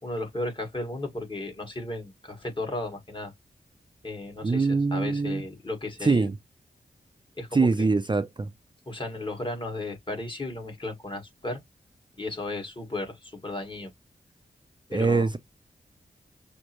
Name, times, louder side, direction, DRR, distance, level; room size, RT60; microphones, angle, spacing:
voice 1, 0.0-3.3 4.0-6.3 7.4-7.9 8.9-11.6 12.2-13.9 14.9-15.3, left 2 dB, 30° left, 2.0 m, -34 dB
voice 2, 4.4-5.4 6.0-6.3 7.5-8.5 14.9-15.4, right 4 dB, 30° right, 0.5 m, -23 dB
6.2 x 2.2 x 3.0 m
wide cardioid pair, 65°, 17 cm